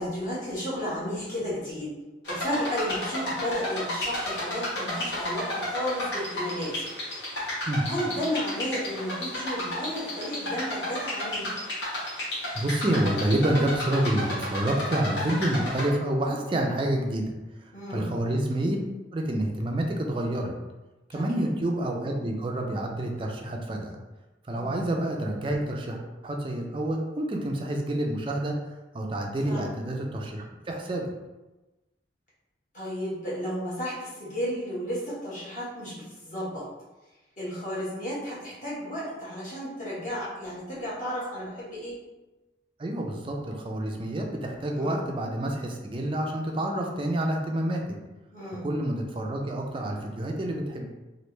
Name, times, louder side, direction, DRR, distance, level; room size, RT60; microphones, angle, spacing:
voice 1, 0.0-1.9 2.3-6.9 7.8-11.5 17.7-18.1 21.1-21.5 24.5-24.8 29.4-29.7 32.7-36.6 37.4-42.0 44.7-45.0 48.3-48.7, equal, 45° left, -9 dB, 1.3 m, -33 dB
sound 1, 2.3-15.9, left 1 dB, 70° left, 1.1 m, -32 dB
voice 2, 12.5-17.3 17.6-18.8 19.1-20.5 21.1-24.0 24.5-26.0 26.2-28.6 28.9-31.1 42.8-47.9 48.6-50.8, right 1 dB, 30° right, 2 dB, 0.4 m, -28 dB
3.2 x 2.5 x 3.0 m, 1.1 s
head